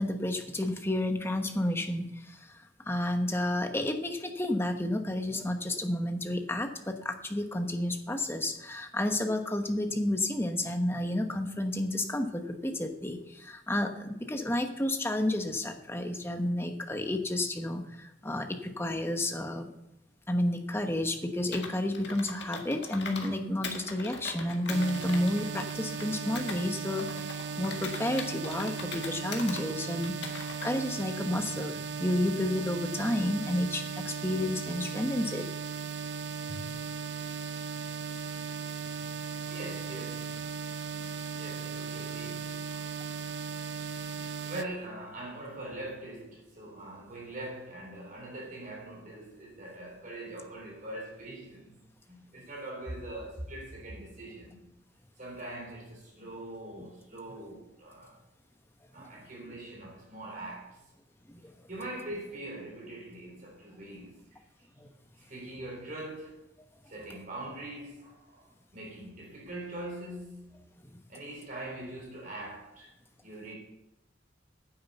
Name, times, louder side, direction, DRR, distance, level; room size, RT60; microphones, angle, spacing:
voice 1, 0.0-19.7 20.3-35.5 36.5-36.6 59.0-59.1 61.3-61.5 64.8-64.9 70.8-70.9, left 1 dB, 10° left, 1.1 m, -31 dB
Computer keyboard, 21.5-23.3 23.6-26.6 27.0-29.6 30.0-30.7, left 4 dB, 65° left, 1.9 m, -41 dB
sound 1, 24.7-44.6, right 6 dB, 60° right, 0.6 m, -37 dB
voice 2, 39.4-40.4 41.4-43.2 43.8-51.8 52.1-54.6 55.2-58.2 58.9-60.8 61.7-64.4 65.2-66.4 66.9-68.5 68.7-70.6 71.1-72.9 73.2-73.5, right 1 dB, 45° right, 3.4 m, -42 dB
9.8 x 7.8 x 8.0 m
head